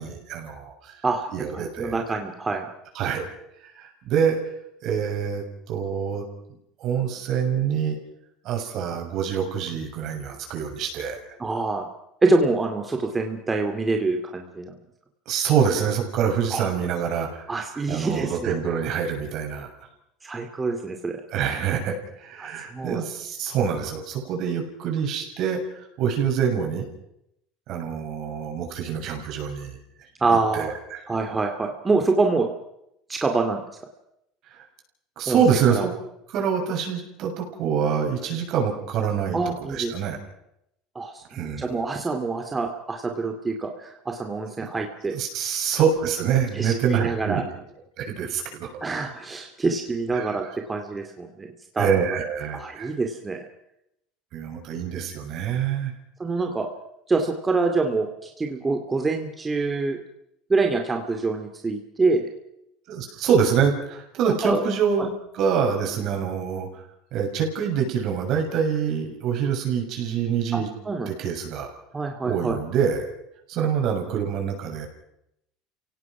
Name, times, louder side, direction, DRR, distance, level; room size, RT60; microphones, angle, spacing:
voice 1, 0.0-1.0 1.3-2.0 3.0-3.3 3.6-4.4 4.8-6.3 6.8-8.0 8.4-11.2 15.3-17.5 17.9-19.7 21.3-26.9 27.7-29.8 30.5-31.0 34.5-34.6 35.2-35.9 36.3-39.4 39.7-40.2 41.3-41.6 44.6-44.7 45.1-47.4 48.0-48.7 50.1-50.4 51.8-53.0 54.3-55.9 62.9-66.8 67.1-70.7 71.1-71.7 72.2-73.1 73.5-74.9, right 7 dB, 60° right, 3 dB, 7.0 m, -25 dB
voice 2, 1.0-2.7 11.4-11.9 12.2-14.7 16.5-16.6 17.5-18.6 20.2-21.2 22.4-23.0 30.2-30.7 31.1-32.5 33.1-33.6 35.3-35.4 35.7-35.9 39.3-39.9 40.9-45.2 46.5-47.5 48.8-51.5 51.7-51.9 52.5-53.5 56.2-56.7 57.1-60.0 60.5-62.3 64.4-64.6 65.0-65.1 70.5-70.6 70.8-71.1 71.9-72.6, right 3 dB, 20° right, 3 dB, 2.3 m, -25 dB
29.5 x 17.5 x 6.0 m, 0.80 s
supercardioid pair, 105°, 0 cm